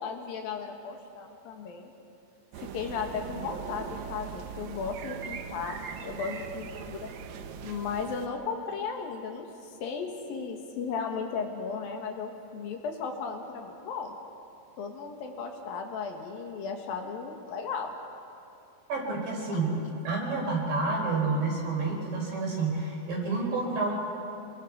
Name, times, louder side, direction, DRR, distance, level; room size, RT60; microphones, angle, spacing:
voice 1, 0.0-1.9 2.6-7.1 7.6-14.1 14.8-17.9 19.5-19.6, left 5 dB, 70° left, 3 dB, 3.0 m, -35 dB
sound 1, 2.5-8.3, right 7 dB, 90° right, 1.5 m, -40 dB
voice 2, 18.9-19.7 20.0-23.9, right 3 dB, 60° right, -2 dB, 6.0 m, -29 dB
27.5 x 22.5 x 4.7 m, 2.7 s
omnidirectional pair, 4.7 m